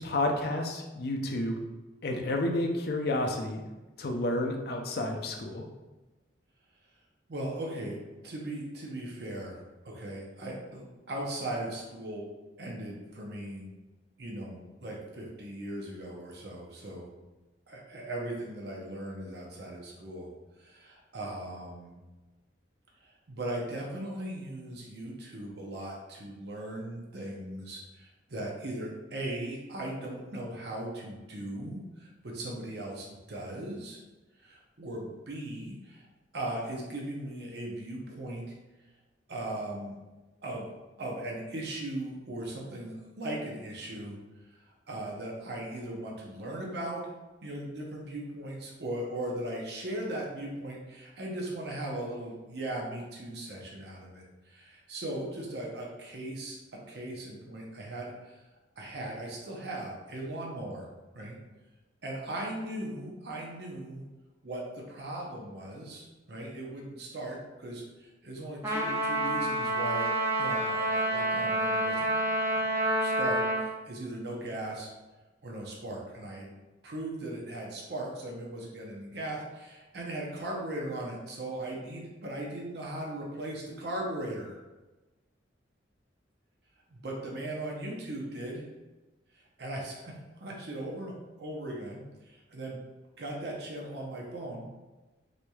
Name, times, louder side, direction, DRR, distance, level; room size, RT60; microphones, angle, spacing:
voice 1, 0.0-1.6 2.0-3.6 4.0-5.6, left 1 dB, 55° left, 2 dB, 0.5 m, -30 dB
voice 2, 7.3-12.3 12.6-13.7 14.2-17.1 17.7-20.3 20.6-22.0 23.0-34.0 34.4-36.1 36.3-38.5 39.3-40.0 40.4-40.7 41.0-44.2 44.9-47.0 47.4-56.6 56.9-58.3 58.8-60.9 61.1-61.4 62.0-64.0 64.4-70.1 70.4-72.1 73.0-74.9 75.4-76.5 76.8-84.6 86.9-88.6 89.6-90.1 90.4-91.1 91.4-92.8 93.2-94.6, right 1 dB, 55° right, -2 dB, 0.7 m, -38 dB
Trumpet, 68.6-73.6, right 1 dB, 15° right, 0.4 m, -28 dB
4.0 x 3.1 x 2.3 m, 1.1 s
head